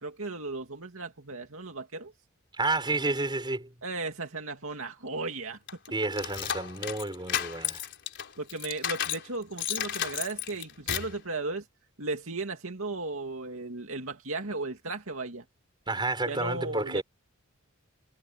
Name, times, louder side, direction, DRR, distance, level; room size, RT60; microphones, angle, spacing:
voice 1, 0.0-2.1 3.8-5.6 8.4-11.6 12.0-15.4 16.3-17.0, right 3 dB, 65° right, 2.7 m, -35 dB
voice 2, 2.6-3.7 5.9-7.8 15.9-17.0, right 2 dB, 20° right, 5.9 m, -30 dB
sound 1, 5.7-9.3 9.6-11.2, left 9 dB, 55° left, 4.2 m, -33 dB
head